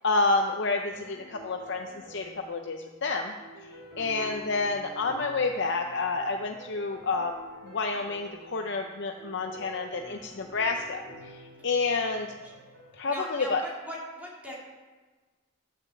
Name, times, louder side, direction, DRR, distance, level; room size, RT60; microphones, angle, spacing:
voice 1, 0.0-3.3 4.0-7.3 7.6-12.3 12.9-13.6, left 3 dB, 55° left, 3 dB, 0.6 m, -29 dB
sound 1, 0.9-12.9, right 1 dB, 55° right, 3.8 m, -49 dB
voice 2, 13.1-14.6, left 1 dB, 5° right, -5 dB, 2.6 m, -40 dB
11.5 x 6.6 x 7.7 m, 1.3 s
head